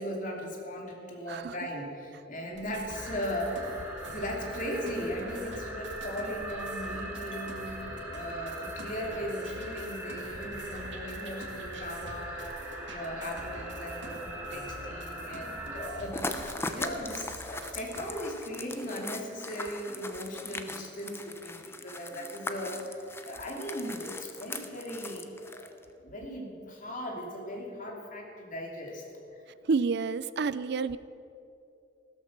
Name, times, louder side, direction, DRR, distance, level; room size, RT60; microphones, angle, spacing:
voice 1, 0.0-3.7 4.1-25.7 26.0-29.0, equal, 45° left, 0 dB, 2.8 m, -38 dB
sound 1, 2.5-18.1, right 1 dB, 85° right, 2.1 m, -46 dB
sound 2, 2.9-15.9, right 1 dB, 10° right, 2.9 m, -41 dB
sound 3, 16.1-25.9, left 2 dB, 15° left, 0.8 m, -40 dB
voice 2, 29.7-31.0, right 4 dB, 65° right, 16 dB, 0.4 m, -29 dB
15.5 x 13.5 x 6.0 m, 2.7 s
head